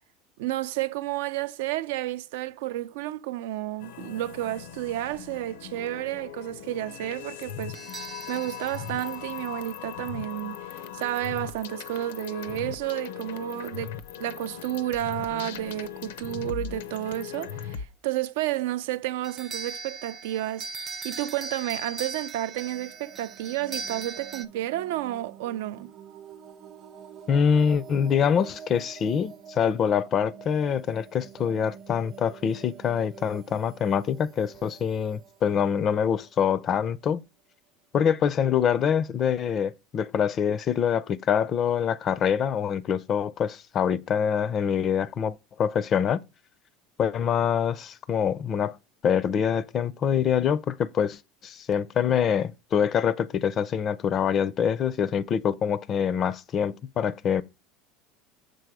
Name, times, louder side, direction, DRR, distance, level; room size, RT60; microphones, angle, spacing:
voice 1, 0.4-7.8 8.3-13.9 14.2-20.7 21.0-25.9, right 14 dB, 80° right, 0.4 m, -31 dB
sound 1, 3.8-17.9, left 9 dB, 85° left, 0.7 m, -39 dB
sound 2, 7.7-10.0 19.2-24.5, right 4 dB, 25° right, 0.5 m, -39 dB
sound 3, 22.4-37.1, right 7 dB, 45° right, 0.8 m, -47 dB
voice 2, 27.3-37.2 37.9-46.2 47.0-48.8 49.0-57.4, left 8 dB, 35° left, 0.4 m, -25 dB
6.8 x 3.7 x 4.8 m
supercardioid pair, 130°, 0 cm